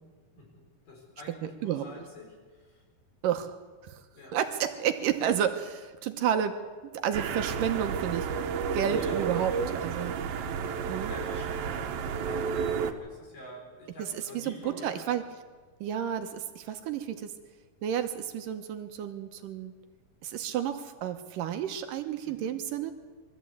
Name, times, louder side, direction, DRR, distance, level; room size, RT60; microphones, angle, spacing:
voice 1, 0.4-2.8 4.1-4.4 8.9-10.1 11.1-15.1 22.2-22.5, left 1 dB, 65° left, -1 dB, 6.4 m, -47 dB
voice 2, 3.2-3.6 3.8-4.0 4.3-6.6 6.9-8.3 8.7-10.1 10.9-11.1 14.3-14.5 14.8-15.2 15.8-17.3 17.8-19.8 20.2-22.9, right 9 dB, 75° right, 7 dB, 2.5 m, -31 dB
sound 1, 7.1-12.9, right 6 dB, 90° right, 2.9 m, -31 dB
22.5 x 14.0 x 8.5 m, 1.4 s
omnidirectional pair, 4.1 m